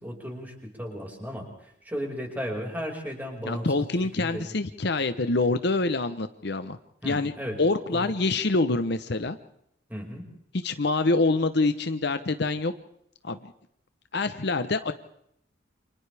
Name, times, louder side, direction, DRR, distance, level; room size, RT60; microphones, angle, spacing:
voice 1, 0.0-3.8 4.2-4.5 7.0-7.6 7.9-8.2 9.9-10.3, equal, 10° right, 0 dB, 5.3 m, -35 dB
voice 2, 3.4-6.8 7.0-7.3 7.6-9.4 10.6-12.7 13.2-13.4 14.1-14.9, left 3 dB, 60° left, 10 dB, 0.9 m, -25 dB
29.0 x 26.5 x 3.5 m, 0.73 s
head